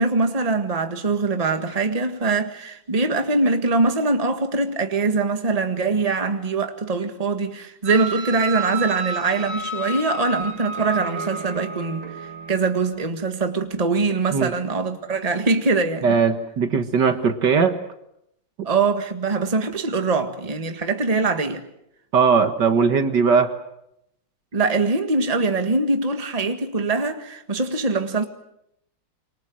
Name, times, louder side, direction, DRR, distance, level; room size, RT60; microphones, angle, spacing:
voice 1, 0.0-16.2 18.6-21.6 24.5-28.3, right 3 dB, 20° right, 1.7 m, -23 dB
sound 1, 7.9-12.9, right 3 dB, 90° right, 2.9 m, -31 dB
voice 2, 16.0-17.8 22.1-23.5, right 5 dB, 65° right, 2.1 m, -19 dB
26.5 x 24.5 x 7.7 m
omnidirectional pair, 2.1 m